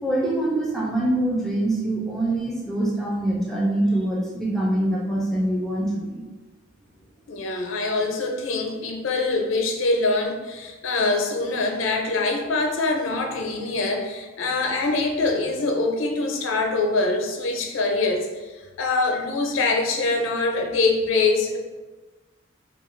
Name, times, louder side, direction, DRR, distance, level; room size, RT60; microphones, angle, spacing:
voice 1, 0.0-6.2, right 1 dB, ahead, -4 dB, 0.4 m, -24 dB
voice 2, 7.3-21.6, left 3 dB, 90° left, 3 dB, 0.5 m, -24 dB
2.8 x 2.3 x 3.0 m, 1.2 s
head